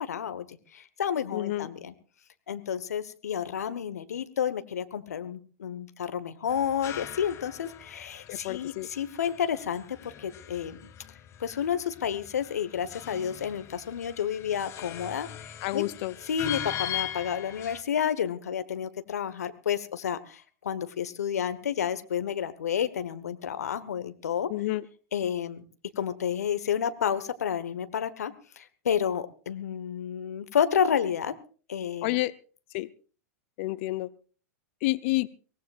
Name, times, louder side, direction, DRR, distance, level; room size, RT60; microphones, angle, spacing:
voice 1, 0.0-1.9 2.5-10.8 11.4-15.8 16.2-24.5 25.1-25.6 26.0-31.3 31.7-32.2, left 8 dB, 75° left, 1.3 m, -30 dB
voice 2, 1.3-1.7 8.3-8.9 15.6-16.1 24.5-24.8 32.0-32.3 32.7-32.9 33.6-34.1 34.8-35.3, left 19 dB, 50° left, 0.7 m, -29 dB
sound 1, 6.5-17.8, left 11 dB, 35° left, 2.0 m, -40 dB
24.0 x 18.0 x 2.5 m
hypercardioid pair, 100°, 9 cm